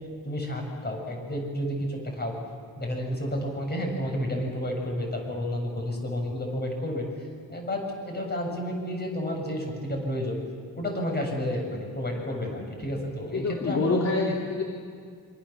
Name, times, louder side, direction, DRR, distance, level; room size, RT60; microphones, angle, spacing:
voice 1, 0.2-2.4 2.8-7.1 7.5-10.4 10.8-14.3, equal, 25° left, 1 dB, 7.3 m, -31 dB
voice 2, 13.3-14.6, left 3 dB, 45° left, -1 dB, 3.3 m, -26 dB
27.0 x 26.5 x 7.3 m, 2.1 s
cardioid pair, 135°, 36 cm